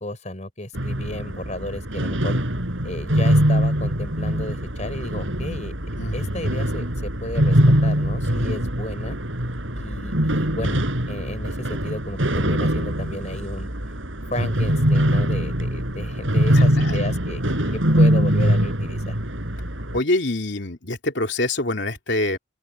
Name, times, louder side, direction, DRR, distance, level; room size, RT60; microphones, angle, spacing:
voice 1, 0.0-2.4 2.8-5.7 6.1-9.2 9.7-10.8 11.1-13.7 14.3-17.4 17.7-19.2, left 1 dB, 40° left, 4.9 m, -33 dB
sound 1, 0.7-20.0, equal, 85° right, 6.2 m, -22 dB
voice 2, 6.0-6.3 16.5-17.0 19.9-22.4, left 2 dB, 65° left, 2.9 m, -25 dB
open air
head